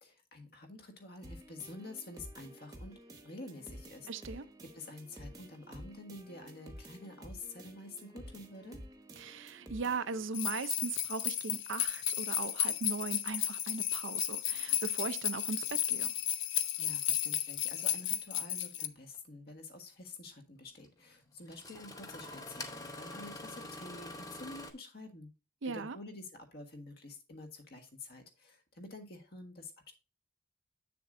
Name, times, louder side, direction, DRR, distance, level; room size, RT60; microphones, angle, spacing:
voice 1, 0.0-3.0 3.2-8.8 16.8-25.3 25.6-29.9, left 2 dB, 50° left, 1.6 m, -49 dB
sound 1, 1.2-10.2, equal, 20° right, 0.9 m, -51 dB
voice 2, 4.1-4.4 9.2-16.1 25.6-26.0, right 4 dB, 75° right, 0.6 m, -38 dB
sound 2, 10.3-18.9, left 12 dB, 70° left, 0.6 m, -34 dB
Engine starting, 19.1-19.2 20.8-20.9 21.5-24.7, left 2 dB, 20° left, 0.8 m, -45 dB
7.8 x 6.8 x 2.6 m
head